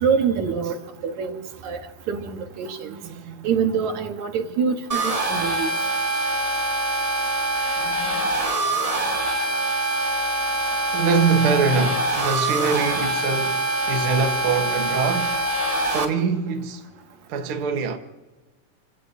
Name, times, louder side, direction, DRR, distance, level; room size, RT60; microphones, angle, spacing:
voice 1, 0.0-1.8 2.1-2.9 3.4-5.7, right 6 dB, 70° right, 2.6 m, -25 dB
voice 2, 2.8-3.5 7.8-8.4 10.6-15.5 15.9-16.9 17.3-18.0, right 5 dB, 55° right, 1.8 m, -24 dB
sound 1, 4.9-16.0, right 2 dB, 30° right, 0.6 m, -24 dB
30.0 x 17.0 x 2.7 m
omnidirectional pair, 3.6 m